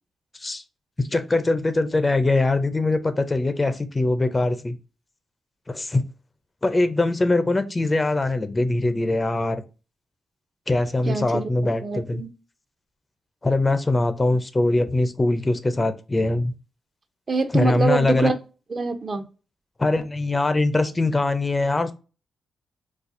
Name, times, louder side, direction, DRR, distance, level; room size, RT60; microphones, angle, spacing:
voice 1, 1.0-4.8 5.7-6.0 6.6-9.6 10.7-12.2 13.4-16.5 17.5-18.3 19.8-21.9, left 2 dB, 25° left, 10 dB, 0.4 m, -22 dB
voice 2, 11.1-11.5 11.8-12.3 17.3-18.4 18.7-19.3, right 3 dB, 40° right, 8 dB, 0.6 m, -25 dB
4.1 x 2.4 x 2.5 m, 0.33 s
cardioid pair, 85°, 0 cm